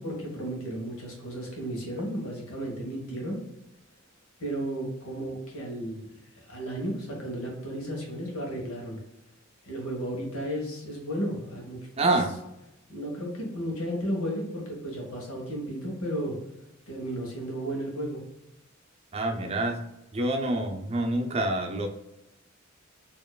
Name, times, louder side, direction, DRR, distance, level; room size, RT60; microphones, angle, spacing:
voice 1, 0.0-3.4 4.4-6.1 6.4-9.0 9.6-12.2 12.9-16.4 16.9-18.2, right 1 dB, 80° left, -1 dB, 1.5 m, -33 dB
voice 2, 12.0-12.3 19.1-19.8 20.1-21.9, right 2 dB, 30° right, 3 dB, 0.5 m, -27 dB
4.4 x 3.0 x 2.3 m, 0.87 s
head